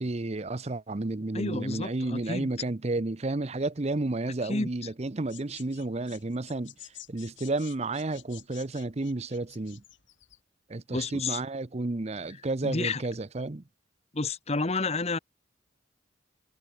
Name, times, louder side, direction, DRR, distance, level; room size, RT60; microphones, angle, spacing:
voice 1, 0.0-6.7 7.1-9.8 10.7-13.6, right 2 dB, 35° right, 0.7 m, -31 dB
voice 2, 1.3-2.5 4.4-4.7 10.9-11.4 12.6-13.0 14.1-15.2, left 3 dB, 35° left, 1.0 m, -30 dB
sound 1, 5.3-10.4, left 13 dB, 75° left, 5.2 m, -50 dB
head